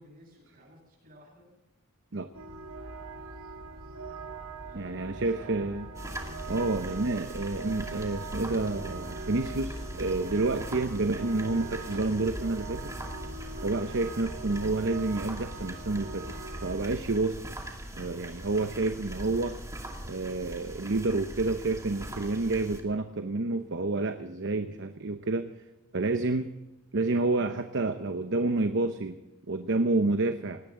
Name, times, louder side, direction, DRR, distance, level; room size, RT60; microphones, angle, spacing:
voice 1, 0.0-1.4 4.6-5.7, equal, 45° right, -1 dB, 7.7 m, -54 dB
sound 1, 2.3-16.8, right 3 dB, 80° right, 2.2 m, -41 dB
voice 2, 4.7-5.9 6.5-12.9 13.6-16.3 16.6-17.4 18.0-19.6 20.1-25.5 25.9-26.5 26.9-29.2 29.5-30.6, right 2 dB, 60° right, 8 dB, 0.9 m, -29 dB
sound 2, 5.9-22.8, right 1 dB, 15° right, 2.4 m, -41 dB
19.5 x 18.0 x 3.8 m, 0.97 s
head